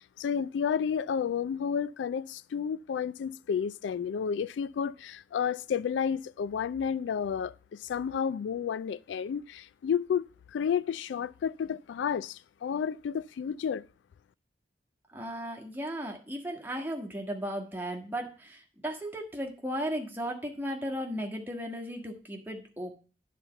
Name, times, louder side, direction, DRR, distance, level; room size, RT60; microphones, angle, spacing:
voice 1, 0.2-10.3 10.5-13.8, left 7 dB, 90° left, 0.3 m, -31 dB
voice 2, 15.1-23.0, equal, 10° right, 1.5 m, -36 dB
10.0 x 4.2 x 6.9 m
head